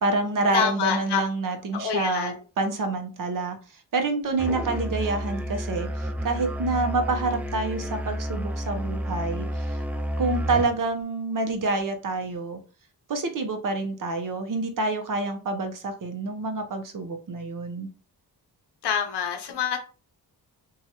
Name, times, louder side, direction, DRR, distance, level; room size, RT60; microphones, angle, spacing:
voice 1, 0.0-3.6 3.9-9.8 10.2-12.6 13.1-17.9, right 3 dB, 50° right, 0.7 m, -27 dB
voice 2, 0.5-1.2 1.7-2.4 18.8-19.8, left 8 dB, 75° left, 0.7 m, -26 dB
Musical instrument, 4.4-10.8, equal, 5° right, 0.3 m, -30 dB
2.8 x 2.3 x 2.8 m
cardioid pair, 65°, 41 cm